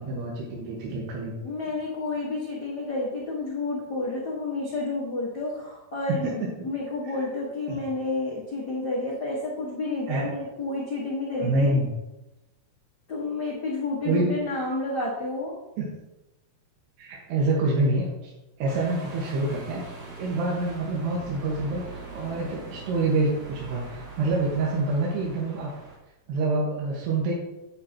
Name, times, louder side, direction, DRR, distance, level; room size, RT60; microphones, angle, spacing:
voice 1, 0.0-1.3 6.1-6.5 7.2-7.3 7.7-7.8 10.1-10.3 11.4-11.9 14.1-14.3 15.8-15.9 17.0-18.3 18.6-19.8 20.2-25.7 26.3-27.3, right 2 dB, 85° right, -4 dB, 3.6 m, -26 dB
voice 2, 1.4-11.7 13.1-15.5, left 2 dB, 80° left, -5 dB, 0.9 m, -30 dB
sound 1, 18.7-26.0, right 3 dB, 40° right, 3.0 m, -42 dB
9.9 x 9.2 x 3.0 m, 0.96 s
omnidirectional pair, 4.7 m